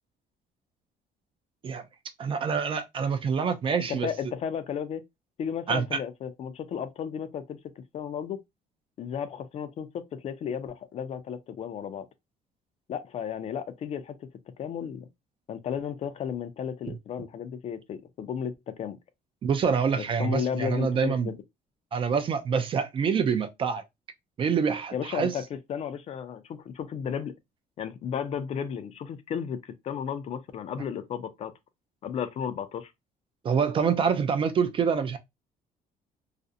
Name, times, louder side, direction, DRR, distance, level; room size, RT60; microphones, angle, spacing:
voice 1, 2.2-4.1 5.7-6.0 19.4-21.3 21.9-23.8 24.4-25.3 33.4-35.2, right 6 dB, 35° right, 0.4 m, -26 dB
voice 2, 3.9-5.0 5.4-8.4 9.0-12.1 12.9-14.3 14.6-15.1 15.5-19.0 20.0-21.4 24.9-27.3 27.8-31.5 32.0-32.9, left 8 dB, 40° left, 0.4 m, -34 dB
2.4 x 2.0 x 2.6 m
cardioid pair, 145°, 16 cm